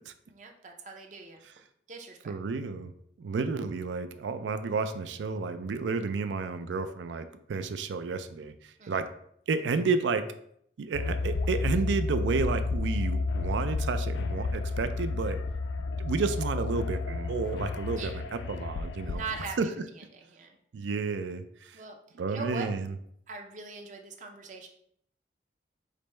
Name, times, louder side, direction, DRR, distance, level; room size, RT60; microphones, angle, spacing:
voice 1, 0.3-1.4 1.9-2.3 8.8-9.0 17.9-18.2 19.0-19.6 20.3-20.5 21.7-22.0 22.3-22.7 23.3-24.7, right 4 dB, 45° right, 3 dB, 0.6 m, -40 dB
voice 2, 2.3-2.9 3.2-9.1 9.5-10.3 10.8-15.4 15.8-19.2 19.6-19.7 20.7-21.8 22.1-23.0, right 4 dB, 90° right, 10 dB, 0.4 m, -31 dB
sound 1, 10.9-19.5, left 3 dB, 80° left, 0.3 m, -31 dB
5.0 x 2.1 x 4.2 m, 0.69 s
head